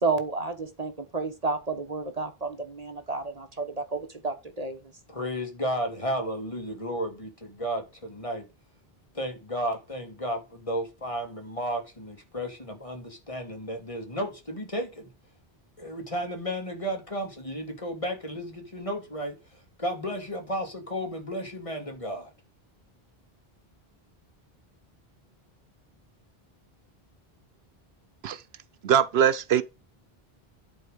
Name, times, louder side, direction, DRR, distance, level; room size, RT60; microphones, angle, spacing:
voice 1, 0.0-4.8, right 3 dB, 40° right, 1.1 m, -31 dB
voice 2, 5.1-8.5 9.1-15.1 15.8-22.3, equal, 30° left, 2.3 m, -33 dB
voice 3, 28.8-29.6, right 8 dB, 80° right, 1.0 m, -22 dB
11.0 x 4.5 x 5.1 m
omnidirectional pair, 1.0 m